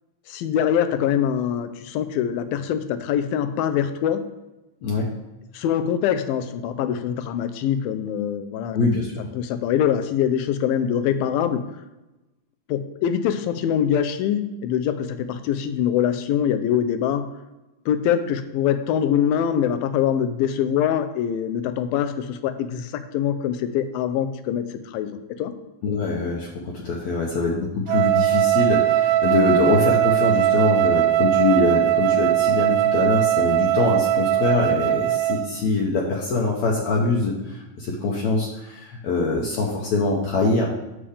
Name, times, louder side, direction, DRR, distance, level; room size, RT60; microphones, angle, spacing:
voice 1, 0.3-4.2 5.5-9.0 9.4-11.6 12.7-17.3 17.9-25.5, left 9 dB, 90° left, 9 dB, 2.5 m, -24 dB
voice 2, 8.7-9.3 25.8-40.7, left 3 dB, 65° left, -2 dB, 2.0 m, -23 dB
Wind instrument woodwind instrument, 27.9-35.5, right 13 dB, 80° right, 2.0 m, -20 dB
9.9 x 7.1 x 3.4 m, 1.0 s
omnidirectional pair, 4.1 m